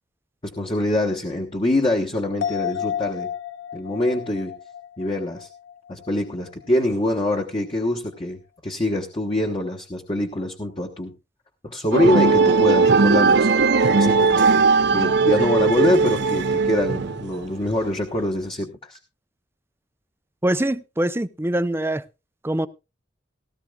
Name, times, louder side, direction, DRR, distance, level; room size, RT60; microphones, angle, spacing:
voice 1, 0.4-3.3 3.7-4.5 5.0-5.5 5.9-11.1 11.6-13.5 13.9-14.7 14.9-19.0, left 1 dB, 30° left, 1.2 m, -24 dB
sound 1, 2.4-6.1 6.4-6.5, left 9 dB, 70° left, 0.7 m, -31 dB
sound 2, 11.9-17.4, right 4 dB, 65° right, 0.7 m, -18 dB
voice 2, 20.4-22.0 22.4-22.7, right 1 dB, 15° right, 0.6 m, -23 dB
17.0 x 13.5 x 2.3 m
head